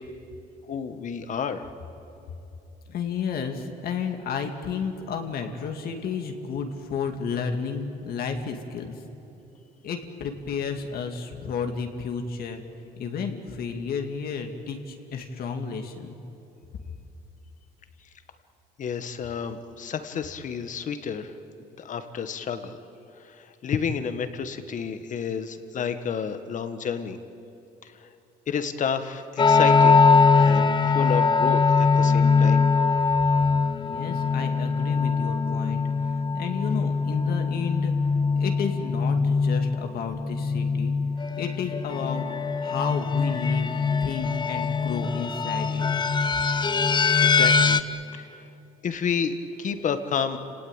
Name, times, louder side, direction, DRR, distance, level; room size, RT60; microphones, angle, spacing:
voice 1, 0.7-1.7 18.8-21.3 21.8-22.8 23.2-27.2 27.8-28.1 28.5-30.0 30.3-32.6 47.2-47.8 48.1-48.5 48.8-50.4, left 6 dB, 50° left, 9 dB, 1.6 m, -30 dB
voice 2, 2.9-8.9 9.8-12.6 13.0-16.2 33.8-37.9 38.3-40.9 41.4-42.3 42.6-43.7 44.0-45.8, left 6 dB, 65° left, 4 dB, 2.3 m, -32 dB
sound 1, 29.4-47.8, left 4 dB, 25° left, 0.8 m, -22 dB
29.5 x 18.0 x 9.1 m, 2.8 s
cardioid pair, 110°, 17 cm